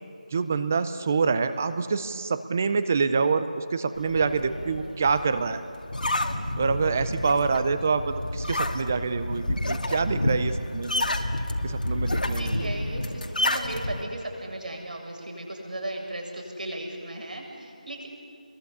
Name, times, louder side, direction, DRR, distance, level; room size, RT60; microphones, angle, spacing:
voice 1, 0.3-5.6 6.6-11.0 11.6-12.7, right 5 dB, 15° right, 12 dB, 0.6 m, -26 dB
sound 1, 4.0-14.0, left 1 dB, 90° left, 2.4 m, -29 dB
voice 2, 4.3-5.0 6.9-7.4 12.3-18.1, right 1 dB, 70° right, 1 dB, 7.5 m, -37 dB
28.0 x 22.0 x 8.4 m, 2.7 s
figure-of-eight pair, 175°, 5 cm